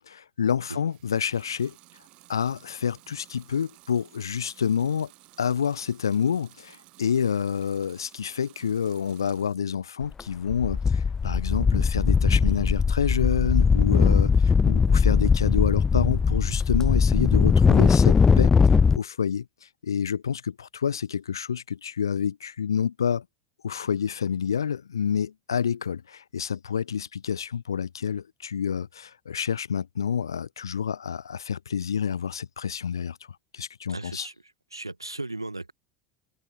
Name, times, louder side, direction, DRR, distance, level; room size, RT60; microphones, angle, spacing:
voice 1, 0.0-1.7 2.3-5.1 5.4-18.5 18.7-19.5 19.8-23.2 23.6-33.2 33.5-34.3, left 7 dB, 75° left, 1.5 m, -28 dB
Water tap faucet / Sink (filling or washing) / Liquid, 0.8-9.7 10.1-10.9, right 19 dB, 50° right, 5.4 m, -55 dB
sound 1, 10.0-10.2 10.5-19.0, left 5 dB, 20° left, 0.3 m, -20 dB
voice 2, 33.9-34.3 34.7-35.7, right 2 dB, 85° right, 1.1 m, -36 dB
figure-of-eight pair, 75°, 2 cm